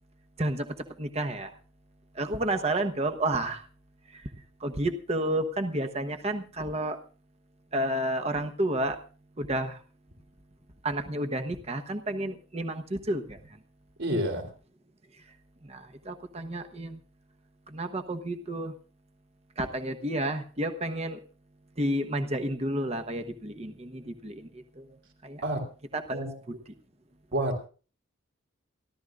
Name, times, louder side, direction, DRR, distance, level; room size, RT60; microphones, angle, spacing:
voice 1, 0.4-1.5 2.1-3.6 4.1-4.3 4.6-7.0 7.7-9.0 9.4-9.8 10.8-13.4 15.6-17.0 17.7-18.7 19.6-21.2 21.8-25.0 25.2-25.4 25.9-26.7, right 1 dB, 30° right, 6 dB, 1.1 m, -31 dB
voice 2, 14.0-14.5 25.4-25.6 26.1-26.3 27.3-27.7, right 1 dB, 60° right, 4 dB, 3.5 m, -29 dB
28.5 x 12.0 x 2.5 m, 0.37 s
head